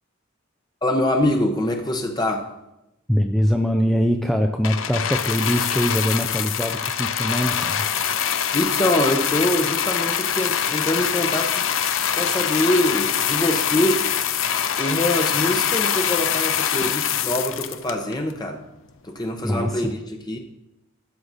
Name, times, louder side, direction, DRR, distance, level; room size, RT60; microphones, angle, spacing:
voice 1, 0.8-2.5 8.5-11.6 12.2-14.0 14.8-18.6 19.0-20.4, left 1 dB, 20° left, 3 dB, 0.8 m, -24 dB
voice 2, 3.1-7.9 19.4-19.8, equal, ahead, 3 dB, 0.5 m, -22 dB
sound 1, 4.6-18.3 19.1-19.2, left 8 dB, 70° left, 0.7 m, -24 dB
13.0 x 8.0 x 4.1 m, 0.90 s
head